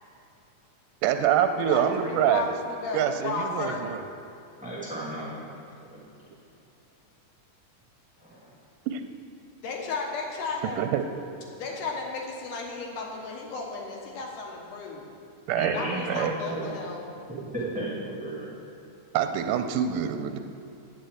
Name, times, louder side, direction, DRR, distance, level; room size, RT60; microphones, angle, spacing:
voice 1, 1.0-2.5 2.9-4.0 8.9-9.0 10.8-11.1 15.5-15.8 16.1-16.4 19.1-20.4, right 9 dB, 90° right, 8 dB, 2.2 m, -25 dB
voice 2, 1.5-3.8 9.6-10.8 11.6-15.0 15.7-17.0, left 4 dB, 85° left, 0 dB, 2.8 m, -34 dB
voice 3, 4.6-5.4 5.9-6.0 8.2-8.5 15.5-16.7 17.5-18.5, right 1 dB, 10° right, -7 dB, 0.4 m, -34 dB
8.8 x 5.6 x 7.8 m, 2.6 s
omnidirectional pair, 3.6 m